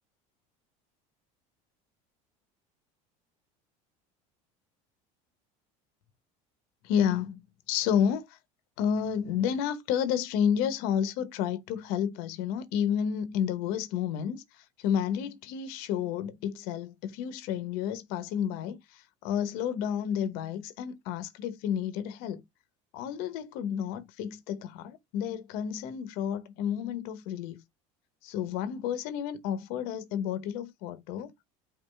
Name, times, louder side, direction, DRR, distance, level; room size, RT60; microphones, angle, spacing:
voice 1, 6.8-7.4 7.7-8.4 8.8-22.4 22.9-27.6 28.2-31.3, left 8 dB, 70° left, 1.0 m, -31 dB
5.4 x 2.7 x 3.4 m
cardioid pair, 135°, 16 cm